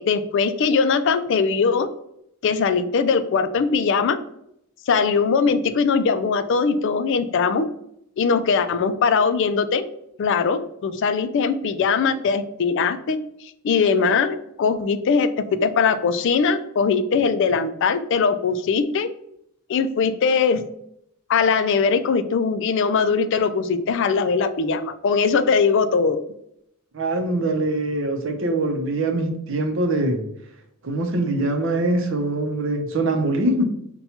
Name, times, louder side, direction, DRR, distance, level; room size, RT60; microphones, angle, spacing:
voice 1, 0.0-1.9 2.4-4.2 4.9-7.7 8.2-9.8 10.2-15.3 15.6-19.1 19.7-20.6 21.3-26.2, left 5 dB, 60° left, 11 dB, 0.3 m, -21 dB
voice 2, 26.9-30.2 30.8-33.6, right 2 dB, 65° right, 5 dB, 0.6 m, -23 dB
5.5 x 2.3 x 2.8 m, 0.75 s
head